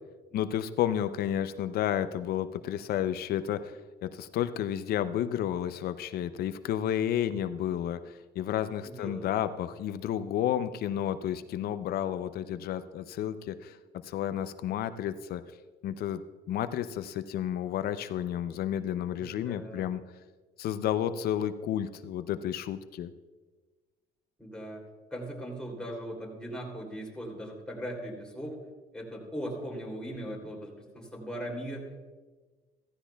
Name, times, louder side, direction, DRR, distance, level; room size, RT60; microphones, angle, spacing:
voice 1, 0.3-13.8 14.0-15.4 15.8-16.2 16.5-20.0 20.6-23.1, left 10 dB, 65° left, 12 dB, 0.5 m, -31 dB
voice 2, 8.8-9.5 19.2-19.9 24.4-24.8 25.1-28.6 28.9-32.0, equal, 5° left, -1 dB, 2.9 m, -39 dB
15.0 x 14.5 x 2.3 m, 1.3 s
cardioid pair, 110°, 17 cm